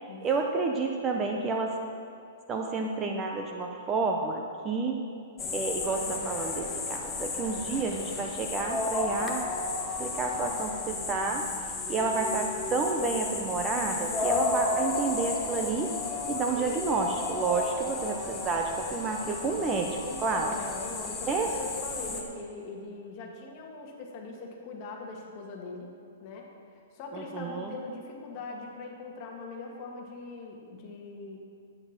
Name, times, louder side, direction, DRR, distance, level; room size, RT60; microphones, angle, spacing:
voice 1, 0.2-1.8 2.5-5.0 5.5-9.4 10.0-15.9 16.2-20.5 21.3-21.5 27.1-27.8, right 4 dB, 15° right, 2 dB, 0.7 m, -30 dB
sound 1, 5.4-22.2, left 3 dB, 15° left, 1.1 m, -33 dB
voice 2, 20.0-25.9 26.2-26.5 26.9-31.4, left 3 dB, 30° left, 0 dB, 1.7 m, -41 dB
10.5 x 9.0 x 5.9 m, 2.4 s
hypercardioid pair, 160°, 0 cm